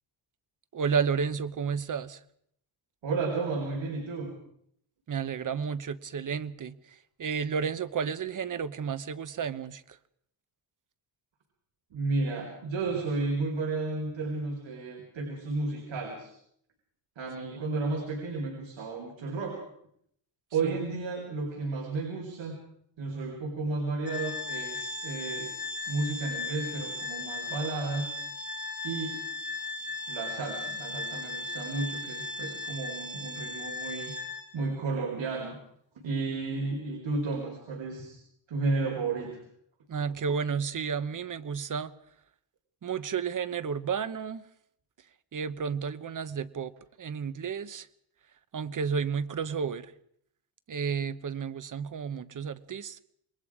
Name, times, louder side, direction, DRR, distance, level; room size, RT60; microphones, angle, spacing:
voice 1, 0.7-2.2 5.1-10.0 17.5-17.6 20.6-20.8 39.9-41.9 42.8-44.5 45.3-46.7 47.0-47.9 48.5-49.9 50.7-53.0, right 6 dB, 40° right, 1.0 m, -32 dB
voice 2, 3.0-4.3 11.9-16.3 17.2-19.6 20.5-22.6 23.0-25.5 25.9-28.1 28.8-29.2 30.1-34.1 34.5-35.6 35.9-38.2 38.5-39.4, right 3 dB, 70° right, 4.7 m, -32 dB
Organ, 24.0-34.7, left 3 dB, 20° left, 2.9 m, -37 dB
27.5 x 21.5 x 5.0 m
wide cardioid pair, 145°, 47 cm